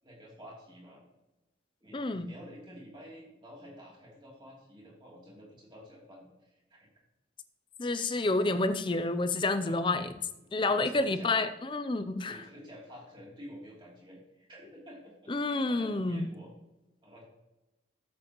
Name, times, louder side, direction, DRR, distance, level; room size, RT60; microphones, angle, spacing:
voice 1, 0.0-1.1 1.8-6.9 9.6-9.8 10.6-11.4 12.2-16.5 17.0-17.2, equal, 25° right, -4 dB, 2.9 m, -50 dB
voice 2, 1.9-2.3 7.8-10.1 10.5-12.5 15.3-16.3, left 2 dB, 25° left, 10 dB, 0.5 m, -29 dB
13.0 x 7.5 x 3.0 m, 0.98 s
head